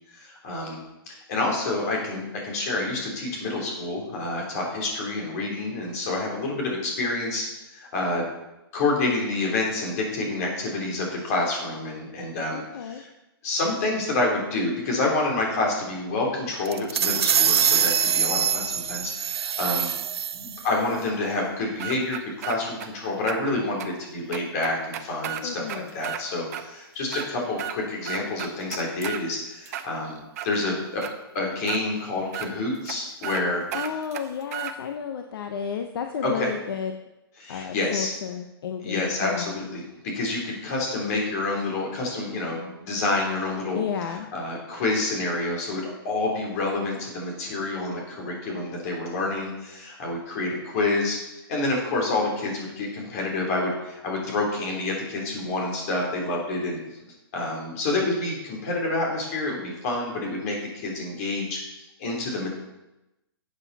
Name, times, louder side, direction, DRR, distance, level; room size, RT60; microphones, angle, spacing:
voice 1, 0.1-7.4 7.7-8.3 8.7-13.1 13.4-19.9 20.3-31.0 31.3-33.6 36.2-36.5 37.4-38.1 38.8-39.9 40.1-43.8 44.3-51.2 51.5-56.8 57.3-62.5, left 2 dB, 35° left, -1 dB, 3.4 m, -28 dB
voice 2, 12.5-13.0 25.4-25.9 33.7-37.0 37.5-39.6 43.7-44.3, left 7 dB, 65° left, 5 dB, 0.9 m, -32 dB
sound 1, 16.7-20.7, right 8 dB, 85° right, 0.7 m, -24 dB
sound 2, 21.8-22.9 23.3-23.4 23.8-23.9 24.3-26.2 26.5-26.6 27.0-27.8 28.0-29.2 29.7-30.5 31.0-31.1 31.7-31.8 32.3-32.5 32.9-33.0 33.2-33.4 33.7-34.7, right 11 dB, 40° right, 0.8 m, -34 dB
12.0 x 8.1 x 4.1 m, 0.96 s
hypercardioid pair, 165°, 13 cm